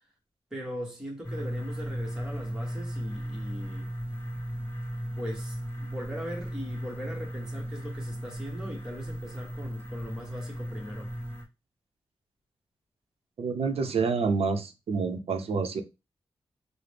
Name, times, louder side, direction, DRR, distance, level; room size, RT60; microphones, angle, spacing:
voice 1, 0.5-3.9 5.2-11.1, equal, 5° right, 1.1 m, -39 dB
sound 1, 1.2-11.4, equal, 25° left, 1.4 m, -36 dB
voice 2, 13.4-15.8, right 4 dB, 85° right, 0.6 m, -28 dB
5.7 x 2.1 x 3.3 m
wide cardioid pair, 140°, 10 cm